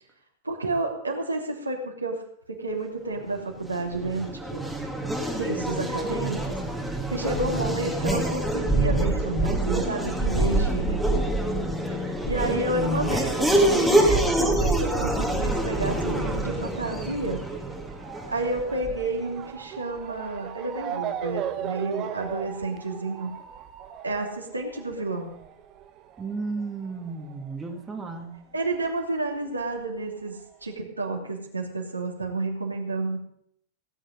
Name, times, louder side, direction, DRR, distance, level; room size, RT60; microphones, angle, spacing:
voice 1, 0.4-2.2 2.5-4.7 5.4-6.6 6.9-11.3 12.0-17.4 18.3-23.3 24.0-25.3 28.5-33.2, right 2 dB, 80° right, -1 dB, 2.7 m, -30 dB
Race car auto racing / Accelerating revving vroom, 3.6-19.2, right 1 dB, ahead, 2.1 m, -26 dB
voice 2, 7.5-7.9 26.2-28.4, right 4 dB, 15° right, 2 dB, 1.9 m, -34 dB
Motor vehicle (road) / Siren, 15.4-28.4 28.6-29.8 30.5-30.6 30.8-30.9, right 10 dB, 35° right, 1.1 m, -38 dB
17.5 x 8.9 x 5.1 m, 0.69 s
figure-of-eight pair, 90°, 0 cm